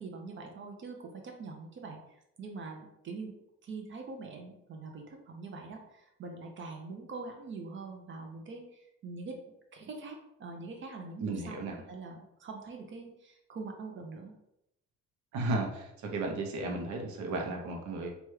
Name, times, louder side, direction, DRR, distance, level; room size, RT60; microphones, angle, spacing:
voice 1, 0.0-3.3 3.6-14.4, right 3 dB, 40° right, 2 dB, 0.5 m, -44 dB
voice 2, 11.2-11.8 15.3-18.1, right 2 dB, 70° right, 1 dB, 0.8 m, -34 dB
3.0 x 2.3 x 3.1 m, 0.80 s
cardioid pair, 130°, 30 cm